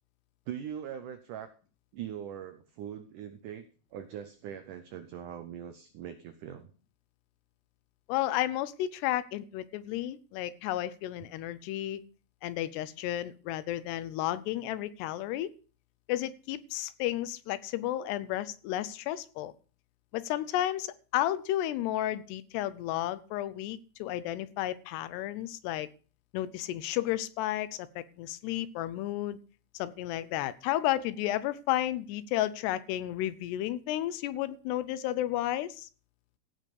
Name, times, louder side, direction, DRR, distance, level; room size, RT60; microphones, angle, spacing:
voice 1, 0.5-1.5 1.9-3.7 3.9-6.7, right 9 dB, 85° right, 10 dB, 1.8 m, -41 dB
voice 2, 8.1-12.0 12.4-15.5 16.1-19.5 20.1-25.9 26.3-29.4 29.7-35.9, left 13 dB, 85° left, 16 dB, 2.8 m, -32 dB
15.5 x 5.5 x 6.9 m, 0.38 s
omnidirectional pair, 4.8 m